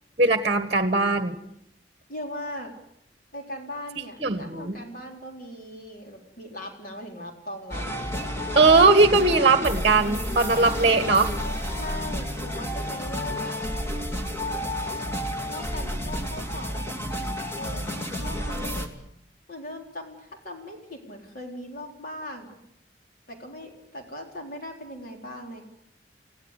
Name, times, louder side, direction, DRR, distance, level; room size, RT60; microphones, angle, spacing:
voice 1, 0.2-1.4 4.2-4.8 8.5-11.3, right 3 dB, 35° right, 9 dB, 1.5 m, -19 dB
voice 2, 2.1-2.7 3.3-7.9 10.7-10.9 11.7-13.6 15.5-17.0 17.5-18.8 19.5-22.6 23.3-25.6, left 1 dB, 50° left, 2 dB, 4.0 m, -39 dB
sound 1, 7.7-18.9, equal, 15° left, 2.7 m, -31 dB
30.0 x 16.5 x 8.3 m, 0.74 s
head